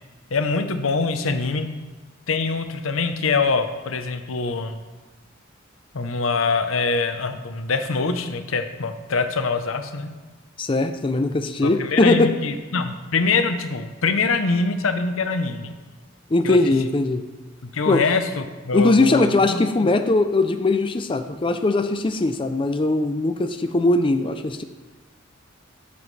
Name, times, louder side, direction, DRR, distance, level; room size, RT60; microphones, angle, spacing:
voice 1, 0.3-1.7 2.3-4.8 5.9-10.1 11.6-15.7 16.4-16.6 17.7-19.6, left 4 dB, 85° left, 8 dB, 0.8 m, -24 dB
voice 2, 10.6-12.3 16.3-17.2 17.9-18.0 18.7-24.6, left 2 dB, 25° left, 7 dB, 0.4 m, -20 dB
13.0 x 7.0 x 3.3 m, 1.3 s
head